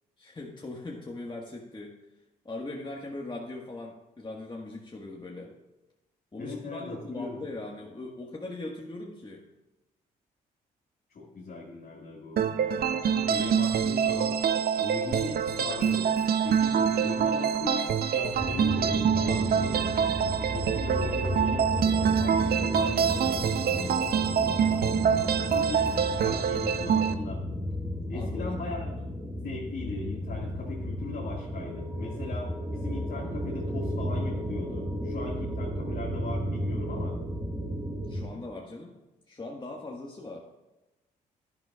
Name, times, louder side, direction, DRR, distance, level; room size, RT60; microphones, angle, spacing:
voice 1, 0.2-2.0 2.4-5.5 6.3-9.4 28.1-28.8 38.1-38.9 39.3-40.4, left 2 dB, 25° left, -1 dB, 1.6 m, -40 dB
voice 2, 6.4-7.4 11.1-14.4 14.8-19.9 20.5-24.9 25.4-27.4 28.1-28.9 29.3-37.1, left 3 dB, 55° left, -3 dB, 2.0 m, -39 dB
sound 1, 12.4-27.1, right 7 dB, 55° right, 0.6 m, -26 dB
sound 2, 18.4-38.3, equal, 15° right, 2.1 m, -33 dB
11.5 x 11.0 x 2.4 m, 1.0 s
hypercardioid pair, 50°, 19 cm